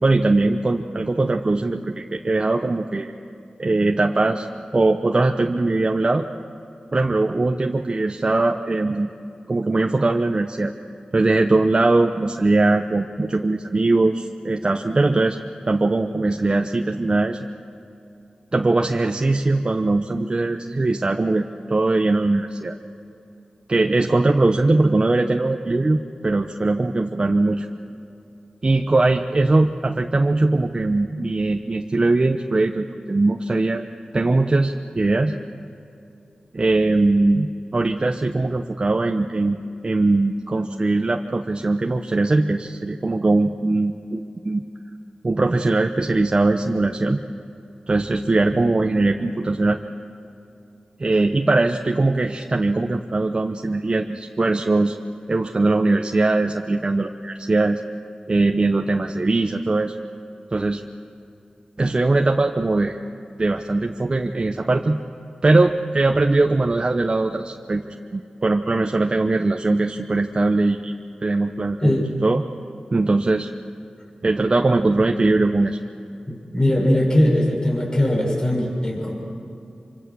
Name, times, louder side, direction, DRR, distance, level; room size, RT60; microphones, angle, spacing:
voice 1, 0.0-3.1 3.6-4.5 4.7-6.3 6.9-9.1 9.5-10.7 11.1-15.4 15.7-17.4 18.5-21.4 21.7-22.8 23.7-27.7 28.6-33.8 34.1-35.3 36.5-39.6 39.8-44.6 45.2-47.2 47.9-49.8 51.0-55.0 55.3-57.8 58.3-59.9 60.5-60.8 61.8-63.0 63.4-65.0 65.4-70.9 71.2-72.4 72.9-73.5 74.2-75.8, right 2 dB, 40° right, 3 dB, 1.0 m, -20 dB
voice 2, 76.3-79.2, left 1 dB, 30° left, -1 dB, 6.3 m, -20 dB
26.0 x 25.5 x 6.3 m, 2.7 s
wide cardioid pair, 65°, 2 cm